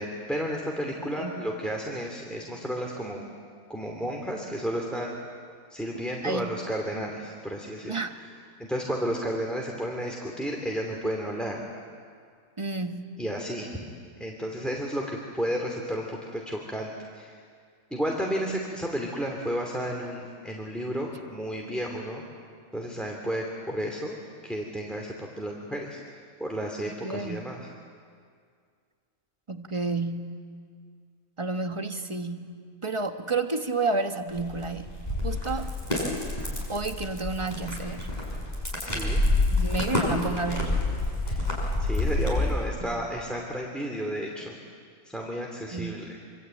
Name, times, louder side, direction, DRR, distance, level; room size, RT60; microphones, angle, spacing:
voice 1, 0.0-3.3 3.7-5.1 5.7-8.0 8.6-11.6 13.2-13.7 14.2-17.3 17.9-22.2 22.7-24.2 24.4-26.0 26.4-27.6 38.8-39.2 41.3-41.4 41.8-44.5 45.1-46.1, equal, ahead, 0 dB, 2.7 m, -32 dB
voice 2, 6.2-6.5 7.8-8.2 12.6-13.2 27.0-27.5 29.5-30.4 31.4-35.0 35.2-35.7 36.7-38.1 39.5-40.8 42.8-43.1 45.7-46.1, right 3 dB, 20° right, 6 dB, 1.3 m, -31 dB
sound 1, 34.3-42.6, left 2 dB, 30° left, 6.8 m, -28 dB
26.5 x 25.0 x 9.0 m, 2.1 s
omnidirectional pair, 1.5 m